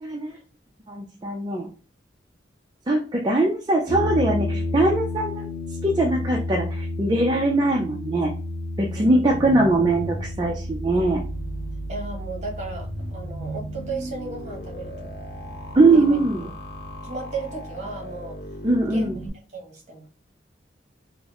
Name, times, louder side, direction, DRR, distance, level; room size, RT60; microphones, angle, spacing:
voice 1, 0.0-0.3 0.9-1.7 2.9-5.5 5.8-8.3 8.8-11.2 15.8-16.5 18.6-19.2, right 2 dB, 25° right, -1 dB, 0.5 m, -21 dB
sound 1, 3.9-17.0, left 2 dB, 35° left, 0.9 m, -33 dB
voice 2, 8.9-9.2 11.9-14.9 15.9-16.2 17.0-18.4 18.8-19.1 19.5-20.1, right 3 dB, 40° right, -2 dB, 1.6 m, -35 dB
sound 2, 9.3-19.3, right 1 dB, 80° left, 1.0 m, -36 dB
3.9 x 2.0 x 3.0 m, 0.36 s
head